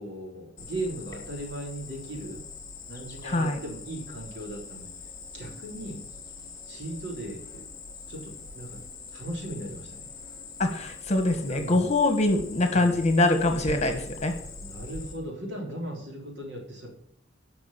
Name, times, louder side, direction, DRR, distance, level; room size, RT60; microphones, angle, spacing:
voice 1, 0.0-2.4 2.9-4.9 5.3-6.0 6.7-7.6 8.1-8.8 9.1-10.1 11.4-11.9 12.7-13.0 14.6-16.9, right 1 dB, 65° right, 1 dB, 3.5 m, -37 dB
Cricket, 0.6-15.1, left 3 dB, 20° left, 2.4 m, -43 dB
voice 2, 3.2-3.6 10.6-14.3, left 2 dB, 35° left, 6 dB, 1.5 m, -24 dB
11.5 x 6.0 x 7.5 m, 0.66 s
head